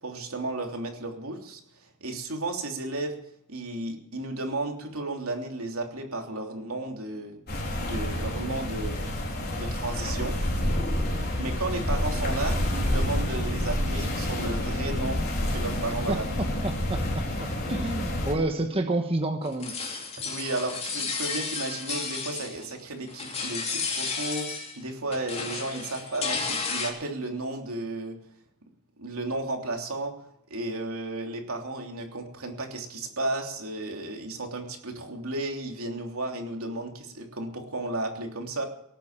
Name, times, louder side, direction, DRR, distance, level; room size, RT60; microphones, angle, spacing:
voice 1, 0.0-3.2 3.5-7.4 7.8-9.0 9.5-10.4 11.4-15.2 15.5-16.5 20.2-28.2 29.0-30.1 30.5-38.6, right 2 dB, 75° right, 3 dB, 3.2 m, -33 dB
sound 1, 7.5-18.3, left 1 dB, 45° left, 3.9 m, -28 dB
voice 2, 16.6-17.0 17.4-19.7, right 2 dB, 25° right, 4 dB, 1.3 m, -29 dB
sound 2, 19.4-22.8 23.1-24.8 25.1-26.9, left 4 dB, 30° left, 3.0 m, -32 dB
18.5 x 9.0 x 7.4 m, 0.78 s
head